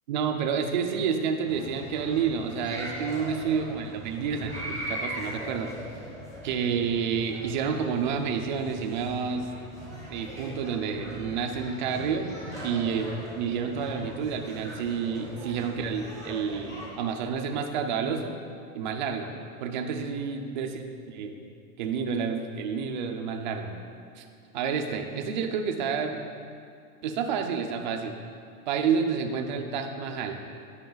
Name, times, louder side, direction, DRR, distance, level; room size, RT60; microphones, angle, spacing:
voice 1, 0.1-5.7 6.4-9.5 10.1-12.3 12.6-13.1 13.4-18.4 18.7-19.3 19.6-21.3 21.8-23.7 24.2-24.3 24.5-26.2 27.0-28.1 28.7-30.4, right 6 dB, 35° right, 4 dB, 0.4 m, -29 dB
sound 1, 1.5-16.9, equal, 5° left, 1.0 m, -40 dB
9.3 x 5.8 x 3.8 m, 2.3 s
supercardioid pair, 165°, 44 cm